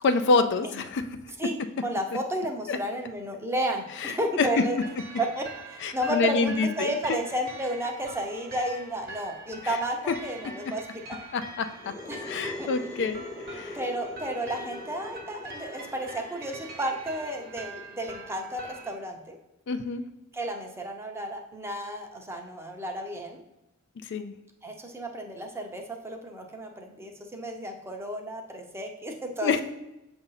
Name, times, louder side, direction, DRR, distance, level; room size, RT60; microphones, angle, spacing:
voice 1, 0.0-1.0 2.7-2.8 4.0-4.5 5.8-7.2 9.6-9.8 11.3-11.7 12.2-13.8 19.7-20.0 24.0-24.3 29.4-29.6, left 4 dB, 60° left, 9 dB, 0.4 m, -27 dB
voice 2, 1.8-4.8 5.2-11.2 12.1-12.7 13.7-19.4 20.3-23.4 24.6-29.5, right 1 dB, 10° right, 2 dB, 0.7 m, -32 dB
sound 1, 4.5-18.9, right 2 dB, 50° right, 1.0 m, -44 dB
sound 2, 11.7-19.2, left 2 dB, 20° left, 0.8 m, -43 dB
7.0 x 2.6 x 5.6 m, 0.93 s
head